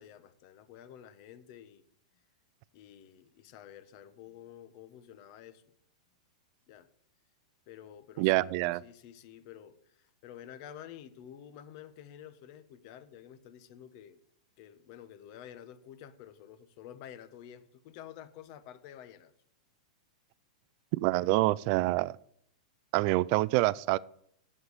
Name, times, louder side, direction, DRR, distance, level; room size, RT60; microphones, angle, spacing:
voice 1, 0.0-1.8 2.7-5.6 6.7-6.9 7.7-14.2 14.6-19.3, left 10 dB, 50° left, 1.1 m, -50 dB
voice 2, 8.2-8.8 21.0-22.2 22.9-24.0, right 19 dB, 50° right, 0.4 m, -26 dB
7.9 x 7.5 x 8.2 m
hypercardioid pair, 125°, 4 cm